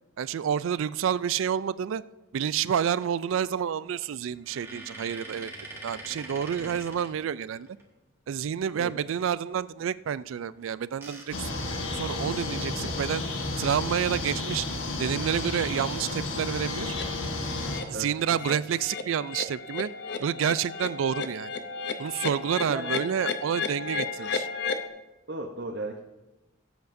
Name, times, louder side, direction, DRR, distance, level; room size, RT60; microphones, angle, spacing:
voice 1, 0.2-2.0 2.3-5.5 5.8-7.7 8.3-13.2 13.6-14.7 15.0-16.9 17.9-19.9 20.2-21.5 22.0-24.5, right 8 dB, 75° right, 18 dB, 0.3 m, -29 dB
sound 1, 4.3-7.8 10.5-12.4 13.0-13.1 13.3-13.5 15.0-15.4 16.0-16.5, right 2 dB, 10° right, 1.5 m, -44 dB
sound 2, 11.3-17.8, left 2 dB, 75° left, 1.3 m, -32 dB
sound 3, 16.9-17.1 17.5-17.8 18.2-24.9, left 5 dB, 55° left, 0.7 m, -34 dB
voice 2, 25.3-26.0, right 2 dB, 55° right, 1 dB, 0.8 m, -35 dB
17.5 x 8.1 x 2.6 m, 1.1 s
head